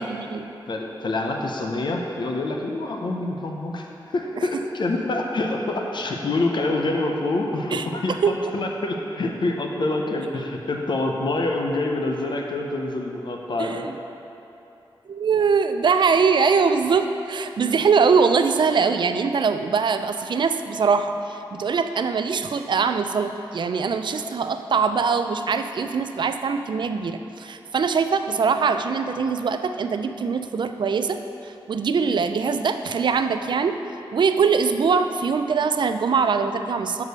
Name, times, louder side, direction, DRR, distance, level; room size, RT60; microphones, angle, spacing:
voice 1, 0.0-0.5 7.7-7.9 8.2-8.5 13.6-13.9 15.1-33.8 34.1-37.0, right 5 dB, 60° right, 9 dB, 0.4 m, -22 dB
voice 2, 0.7-13.9, left 2 dB, 60° left, 1 dB, 0.7 m, -26 dB
6.6 x 4.7 x 6.7 m, 2.8 s
wide cardioid pair, 120°, 9 cm